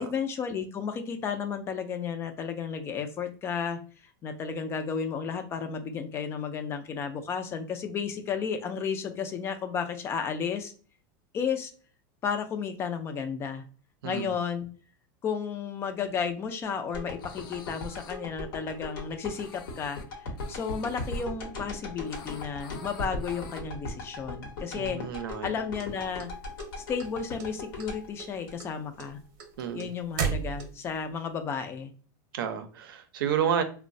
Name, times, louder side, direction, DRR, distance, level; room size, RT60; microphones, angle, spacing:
voice 1, 0.0-3.8 4.2-10.7 11.3-11.7 12.2-13.6 14.0-14.7 15.2-25.0 25.4-26.3 26.8-29.2 29.7-31.9, left 6 dB, 20° left, 8 dB, 0.3 m, -33 dB
voice 2, 14.0-14.3 24.7-25.5 29.6-29.9 32.3-33.6, right 8 dB, 85° right, 8 dB, 0.5 m, -30 dB
sound 1, 16.9-29.1 29.5-29.6, left 2 dB, 75° left, 0.9 m, -39 dB
sound 2, 17.1-18.1 19.3-20.0 20.4-21.2 22.0-23.6, left 6 dB, 90° left, 0.5 m, -50 dB
sound 3, 25.8-27.1 27.4-27.9 28.2-31.0, right 6 dB, 50° right, 0.7 m, -33 dB
3.0 x 2.1 x 2.5 m, 0.40 s
supercardioid pair, 150°, 11 cm